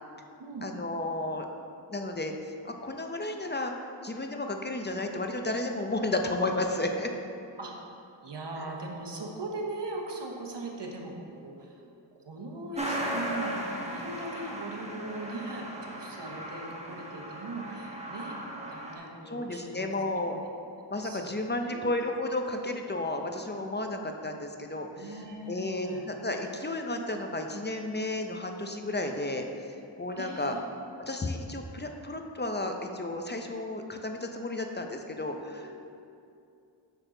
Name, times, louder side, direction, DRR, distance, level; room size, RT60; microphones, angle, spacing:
voice 1, 0.6-1.5 1.9-7.1 19.3-20.5 20.9-25.2 25.5-29.4 30.0-30.5 31.1-35.8, left 2 dB, 25° left, 4 dB, 0.6 m, -33 dB
voice 2, 8.0-11.8 12.1-18.4 18.7-20.2 21.0-21.9 24.9-26.0 27.0-27.1 27.8-28.0 30.2-30.6 35.6-35.8, right 2 dB, 65° right, 0 dB, 1.1 m, -40 dB
Truck, 12.7-19.0, right 1 dB, 15° right, 1.1 m, -37 dB
6.4 x 6.3 x 3.8 m, 2.5 s
cardioid pair, 50°, 46 cm